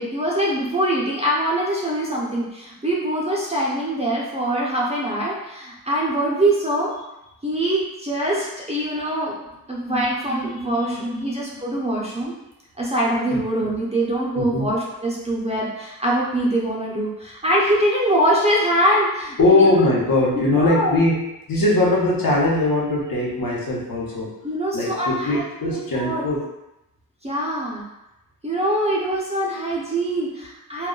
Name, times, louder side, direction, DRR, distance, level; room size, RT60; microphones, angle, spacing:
voice 1, 0.0-6.9 7.4-9.3 9.7-12.3 12.8-19.7 20.3-20.9 24.4-26.2 27.2-27.9 28.4-30.9, right 1 dB, 15° right, -5 dB, 0.5 m, -23 dB
voice 2, 10.4-11.6 13.3-13.4 14.3-14.7 19.4-21.2 21.5-24.3 24.7-26.4, left 2 dB, 65° left, -5 dB, 0.9 m, -21 dB
2.2 x 2.1 x 3.7 m, 0.92 s
wide cardioid pair, 155°, 37 cm